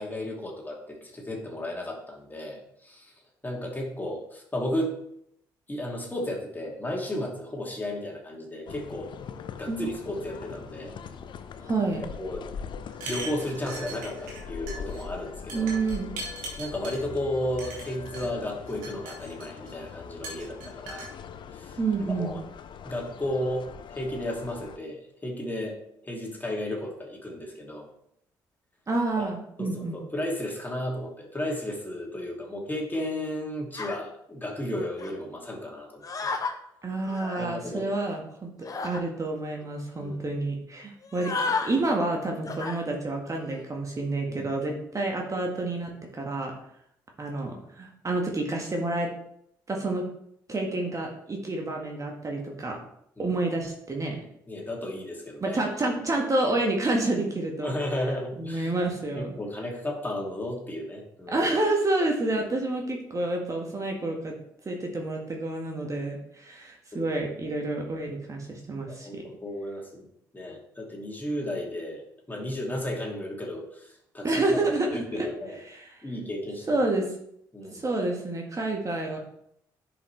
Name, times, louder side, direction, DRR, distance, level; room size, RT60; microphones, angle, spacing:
voice 1, 0.0-3.1 3.4-5.0 5.7-9.1 9.6-10.9 12.2-12.4 13.0-15.7 16.6-21.1 21.5-21.8 22.2-22.4 22.8-25.8 26.0-27.9 29.2-29.3 29.6-36.4 37.4-37.9 40.0-40.3 44.3-44.5 53.2-53.3 54.5-55.6 57.6-58.7 59.2-61.4 66.9-67.1 67.5-67.6 68.8-70.1 70.3-72.0 72.3-74.3 74.9-75.6 76.0-76.8 77.5-77.8, left 1 dB, 20° left, -1 dB, 2.5 m, -34 dB
sound 1, 8.7-24.8, left 6 dB, 50° left, 0.6 m, -42 dB
voice 2, 11.6-12.0 15.5-16.1 21.8-22.4 28.9-30.0 36.8-38.5 38.8-41.3 41.6-46.5 47.2-49.1 49.7-50.0 50.5-52.8 53.2-54.2 55.4-57.7 58.4-59.3 61.3-64.3 64.7-69.2 74.2-75.3 75.7-75.9 76.7-77.1 77.7-79.2, right 2 dB, 30° right, 1 dB, 1.7 m, -29 dB
sound 2, 12.9-14.4 14.7-15.0 15.5-17.0 17.6-18.3 18.7-19.7 20.2-21.1, right 2 dB, 75° right, 1.7 m, -39 dB
sound 3, 33.7-34.0 35.0-35.1 36.0-36.5 37.0-37.5 38.6-39.0 39.6-39.7 39.9-40.2 41.0-41.7 42.5-42.8 43.3-43.6, left 4 dB, 35° left, 1.2 m, -32 dB
10.5 x 5.2 x 3.3 m, 0.73 s
hypercardioid pair, 50°, 10 cm